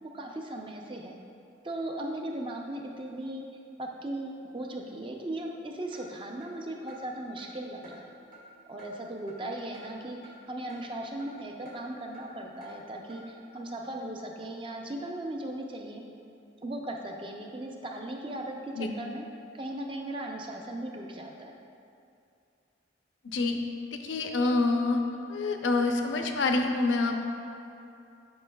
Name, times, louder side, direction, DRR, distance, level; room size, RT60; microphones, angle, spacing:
voice 1, 0.0-1.1 1.6-3.5 3.8-8.1 8.7-16.0 16.6-19.2 19.5-21.6, right 1 dB, 25° right, 1 dB, 0.5 m, -37 dB
Clock, 5.9-6.0 6.4-6.5 6.9-7.0 7.4-7.5 7.8-8.0 8.3-8.4 8.8-8.9 9.3-9.4 9.7-9.9 10.2-10.3 10.7-10.8 11.2-11.3 11.7-11.8 12.1-12.3 12.6-12.7 13.1-13.2, right 1 dB, 45° right, 1.4 m, -51 dB
voice 2, 23.2-23.6 23.9-25.0 25.3-27.3, left 3 dB, 80° left, 4 dB, 0.6 m, -27 dB
11.0 x 5.3 x 2.3 m, 2.6 s
head